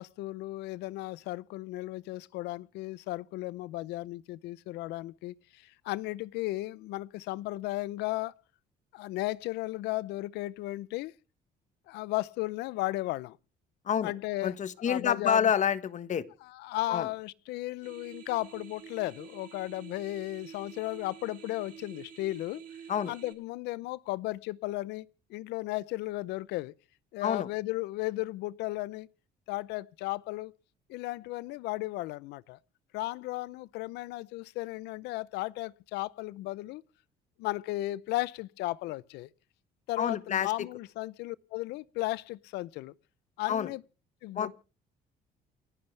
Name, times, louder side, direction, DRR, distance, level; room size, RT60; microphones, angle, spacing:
voice 1, 0.0-8.3 8.9-11.1 11.9-13.4 14.0-14.6 14.9-15.5 16.4-22.6 23.0-26.7 27.1-29.1 29.5-30.5 30.9-32.6 32.9-36.8 37.4-39.3 39.9-42.9 43.4-43.8 44.2-44.5, left 18 dB, 90° left, 0.6 m, -35 dB
voice 2, 14.4-16.2 16.9-17.1 22.9-23.1 27.2-27.5 40.0-40.5 43.5-43.7 44.3-44.5, left 8 dB, 45° left, 1.4 m, -28 dB
sound 1, 17.8-23.3, right 8 dB, 55° right, 3.7 m, -49 dB
28.5 x 9.8 x 3.3 m
cardioid pair, 110°, 17 cm